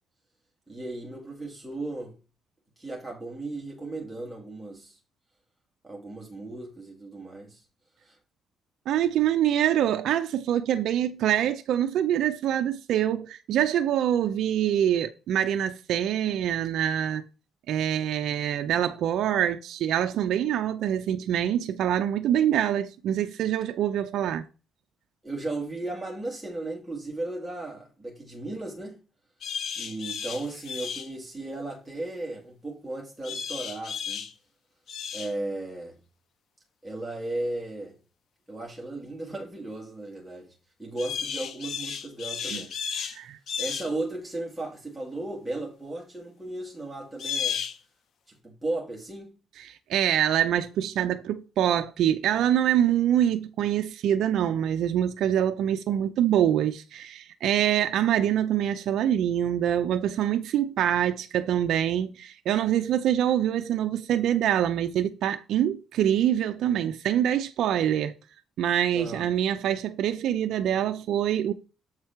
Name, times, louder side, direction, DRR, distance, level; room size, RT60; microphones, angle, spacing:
voice 1, 0.7-2.1 2.8-5.0 5.8-7.6 8.0-8.2 25.2-29.0 29.8-34.3 35.1-36.0 36.8-38.0 38.5-40.5 40.8-42.7 43.6-47.6 48.4-49.3 68.9-69.3, right 2 dB, 5° right, 2.4 m, -35 dB
voice 2, 8.9-17.3 17.7-24.4 42.5-42.6 43.1-43.4 49.6-68.1 68.6-71.5, right 10 dB, 80° right, 0.5 m, -25 dB
sound 1, 29.4-31.1 33.2-34.3 34.9-35.3 41.0-43.2 43.5-43.9 47.2-47.8, left 7 dB, 65° left, 1.0 m, -33 dB
7.3 x 4.7 x 4.5 m
cardioid pair, 90°, 0 cm